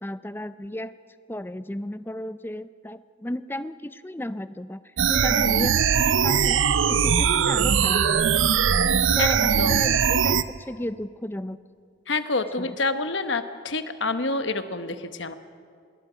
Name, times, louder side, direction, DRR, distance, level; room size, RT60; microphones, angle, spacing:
voice 1, 0.0-0.9 1.3-6.6 6.9-8.5 9.1-11.6 12.6-12.8, left 1 dB, 10° left, 13 dB, 0.4 m, -34 dB
sound 1, 5.0-10.4, right 7 dB, 75° right, 0.6 m, -21 dB
voice 2, 9.2-9.9 12.1-15.3, left 3 dB, 65° left, 9 dB, 1.1 m, -28 dB
26.0 x 21.0 x 5.1 m, 2.3 s
head